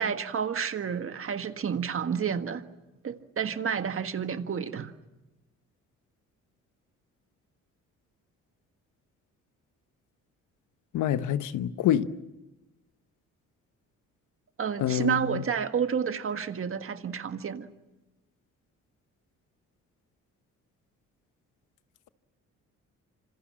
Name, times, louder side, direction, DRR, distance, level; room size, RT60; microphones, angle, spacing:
voice 1, 0.0-2.6 3.0-4.9 14.6-17.7, right 7 dB, 45° right, 1.6 m, -30 dB
voice 2, 10.9-12.1 14.8-15.4, left 11 dB, 85° left, 1.2 m, -26 dB
26.5 x 26.5 x 7.5 m
cardioid pair, 90°, 30 cm